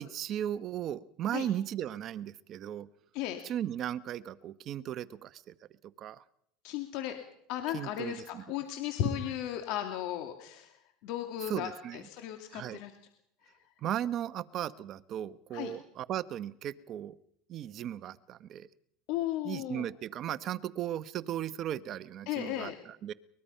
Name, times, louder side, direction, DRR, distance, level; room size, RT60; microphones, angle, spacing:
voice 1, 0.0-2.9 3.4-5.5 6.0-6.2 7.7-8.4 11.5-12.1 12.5-12.8 13.8-17.2 17.5-18.7 19.4-23.1, right 11 dB, 45° right, 15 dB, 1.0 m, -36 dB
voice 2, 6.6-7.2 7.5-10.7 11.0-12.9 15.5-15.7 19.1-19.9 22.3-22.7, left 11 dB, 65° left, 5 dB, 2.4 m, -35 dB
23.0 x 21.5 x 5.6 m, 0.71 s
supercardioid pair, 125°, 0 cm